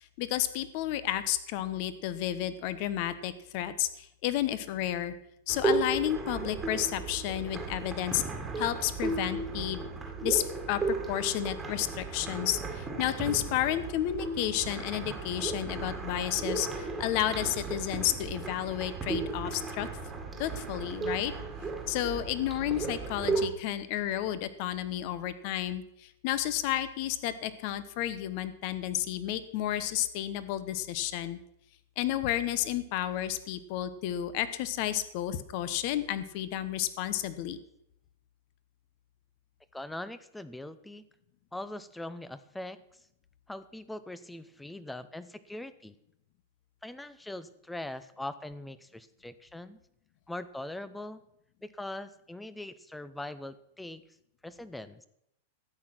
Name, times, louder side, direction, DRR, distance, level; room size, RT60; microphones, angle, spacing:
voice 1, 0.2-5.1 5.5-8.2 8.6-9.9 10.2-19.9 20.4-21.3 21.9-31.4 32.0-37.6, left 12 dB, 45° left, 14 dB, 1.0 m, -31 dB
sound 1, 5.5-23.5, right 4 dB, 10° right, 1.8 m, -35 dB
voice 2, 39.7-41.0 41.5-42.8 43.5-45.9 46.8-49.8 50.3-51.2 51.6-54.0 54.4-55.0, left 1 dB, 5° left, 15 dB, 0.6 m, -41 dB
13.0 x 8.8 x 6.0 m, 0.77 s
supercardioid pair, 145°, 0 cm